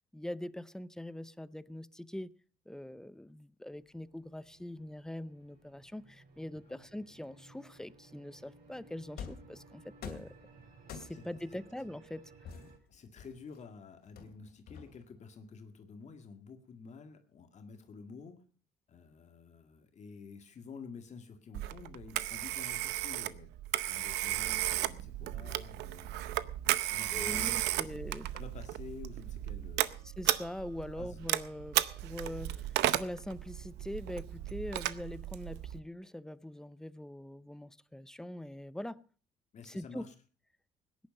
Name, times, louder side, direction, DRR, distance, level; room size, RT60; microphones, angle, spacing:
voice 1, 0.1-2.3 2.7-10.3 10.9-12.3 27.1-28.3 30.2-39.0 39.6-40.1, left 1 dB, 5° left, 0.6 m, -43 dB
sound 1, 3.7-12.8, right 3 dB, 60° right, 6.2 m, -59 dB
sound 2, 9.2-9.5 10.0-10.4 10.9-11.4 12.4-13.6 14.2-15.2, left 6 dB, 65° left, 2.8 m, -46 dB
voice 2, 11.1-11.6 12.5-18.4 18.9-23.5 23.9-26.2 26.6-27.9 28.3-30.1 30.9-31.2 39.5-40.1, left 5 dB, 45° left, 1.9 m, -50 dB
Telephone, 21.5-35.8, right 15 dB, 85° right, 0.7 m, -34 dB
17.5 x 10.5 x 5.3 m
cardioid pair, 110°, 17 cm